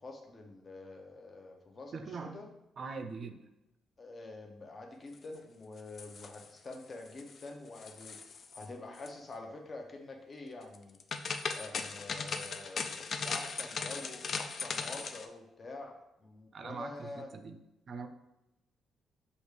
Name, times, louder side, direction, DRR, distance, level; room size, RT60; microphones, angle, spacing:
voice 1, 0.0-2.5 4.0-11.0 11.5-15.9 16.2-17.3, left 2 dB, 35° left, 2 dB, 0.7 m, -47 dB
voice 2, 1.9-2.5 2.8-3.4 16.5-17.6 17.9-18.1, right 4 dB, 50° right, 7 dB, 0.5 m, -42 dB
sound 1, 5.8-6.7 7.1-7.5 7.7-8.7 8.9-9.1 10.7-15.3, left 5 dB, 50° left, 0.3 m, -38 dB
5.1 x 2.5 x 3.2 m, 0.90 s
cardioid pair, 90°, 0 cm